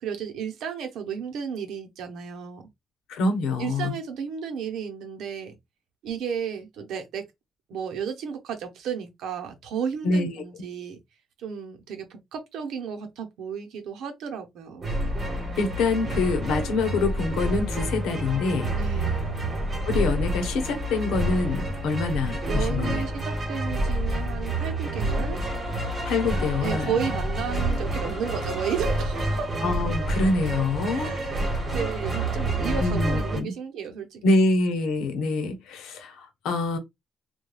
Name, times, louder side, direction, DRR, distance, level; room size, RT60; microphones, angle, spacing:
voice 1, 0.0-2.6 3.6-5.6 6.0-7.2 7.7-11.0 11.4-14.9 18.8-19.3 22.5-25.4 26.6-29.5 30.9-34.2, right 7 dB, 85° right, 0.7 m, -33 dB
voice 2, 3.1-4.0 10.0-10.4 15.6-18.7 19.8-23.0 26.1-26.9 29.6-31.1 32.8-33.5 34.2-36.8, left 3 dB, 90° left, 0.7 m, -25 dB
sound 1, 14.8-33.4, right 1 dB, 35° right, 1.3 m, -28 dB
3.1 x 2.2 x 2.2 m
cardioid pair, 90°, 0 cm